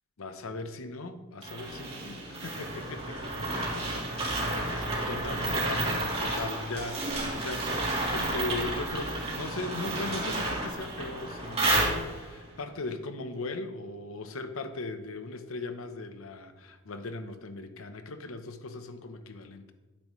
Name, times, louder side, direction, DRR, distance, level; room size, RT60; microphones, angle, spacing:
voice 1, 0.2-4.0 4.4-19.7, left 3 dB, 70° left, 9 dB, 0.8 m, -39 dB
sound 1, 1.4-12.4, right 2 dB, 30° right, 2.7 m, -31 dB
10.5 x 9.6 x 3.1 m, 1.2 s
head